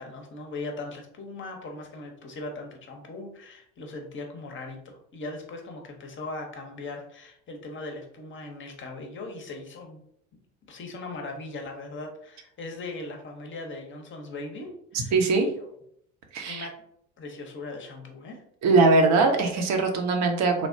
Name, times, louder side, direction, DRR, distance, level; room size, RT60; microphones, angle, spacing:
voice 1, 0.0-10.0 10.7-15.7 16.5-16.7 17.2-18.4, left 2 dB, 30° left, 3 dB, 0.7 m, -39 dB
voice 2, 15.1-15.5 16.3-16.7 18.6-20.7, right 3 dB, 45° right, 4 dB, 0.7 m, -21 dB
3.2 x 2.0 x 2.6 m, 0.70 s
hypercardioid pair, 70°, 40 cm